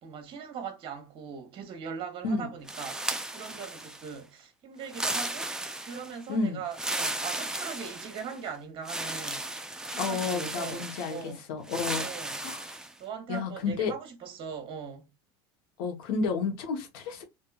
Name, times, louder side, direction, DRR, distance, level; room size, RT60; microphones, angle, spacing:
voice 1, 0.0-9.5 9.9-11.5 12.0-12.4 13.0-15.1, right 6 dB, 45° right, 0.9 m, -40 dB
sound 1, 2.7-4.2 4.8-6.2 6.7-8.4 8.8-11.2 11.7-12.9, right 1 dB, 5° right, 0.4 m, -35 dB
voice 2, 6.3-6.6 9.9-11.2 11.5-12.1 12.4-12.7 13.3-13.9 15.8-17.2, left 4 dB, 70° left, 1.0 m, -31 dB
3.0 x 2.5 x 2.3 m
hypercardioid pair, 95°, 13 cm